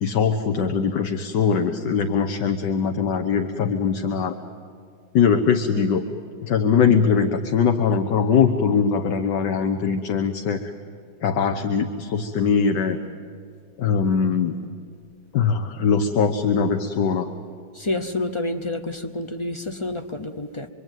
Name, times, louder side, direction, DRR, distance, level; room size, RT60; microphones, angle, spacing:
voice 1, 0.0-4.4 5.1-6.0 6.4-10.6 11.2-13.0 13.8-14.6 15.3-17.3, left 6 dB, 70° left, 5 dB, 1.7 m, -21 dB
voice 2, 17.7-20.7, left 2 dB, 35° left, 8 dB, 0.5 m, -28 dB
26.0 x 23.5 x 9.2 m, 2.2 s
omnidirectional pair, 1.9 m